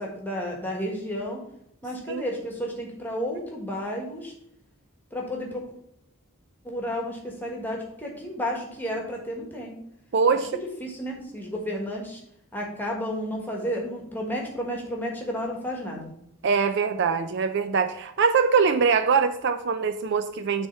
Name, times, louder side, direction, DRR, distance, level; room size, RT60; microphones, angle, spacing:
voice 1, 0.0-1.4 1.8-4.3 5.1-5.6 6.6-9.7 10.3-10.4 10.8-12.2 12.5-16.1, equal, 10° left, 0 dB, 1.4 m, -32 dB
voice 2, 10.1-10.6 16.4-20.7, right 5 dB, 50° right, 9 dB, 0.4 m, -23 dB
7.1 x 3.5 x 5.6 m, 0.76 s
head